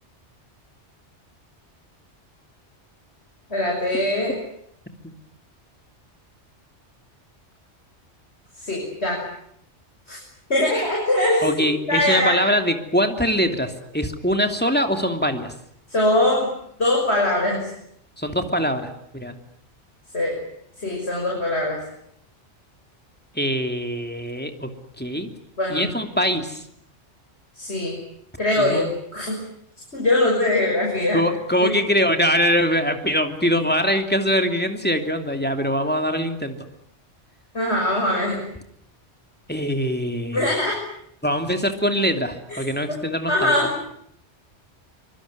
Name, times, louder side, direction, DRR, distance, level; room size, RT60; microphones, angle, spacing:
voice 1, 3.5-4.3 8.6-9.2 10.1-10.2 10.5-12.4 15.9-16.5 16.8-17.7 20.1-20.4 20.8-21.8 25.6-25.9 27.6-28.0 28.4-28.9 29.1-29.4 29.9-31.2 31.6-31.7 37.5-38.4 40.3-40.8 42.5-42.6 42.9-43.0 43.3-43.7, left 1 dB, 65° left, -1 dB, 6.5 m, -22 dB
voice 2, 11.4-15.5 18.2-19.3 23.3-24.7 25.0-25.3 25.7-26.6 28.6-28.9 31.1-36.6 39.5-40.5 41.2-43.5, equal, 10° left, 5 dB, 2.8 m, -23 dB
24.5 x 24.0 x 9.5 m, 0.72 s
omnidirectional pair, 1.2 m